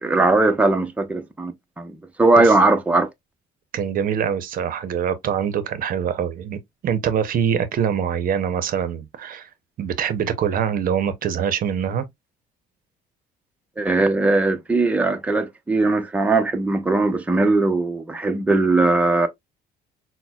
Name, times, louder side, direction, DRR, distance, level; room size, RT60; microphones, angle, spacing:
voice 1, 0.0-3.1 13.8-19.3, right 2 dB, 10° right, 0.6 m, -19 dB
voice 2, 3.7-9.5 9.8-12.1, right 8 dB, 55° right, 0.7 m, -24 dB
5.8 x 2.1 x 2.2 m
cardioid pair, 110°, 17 cm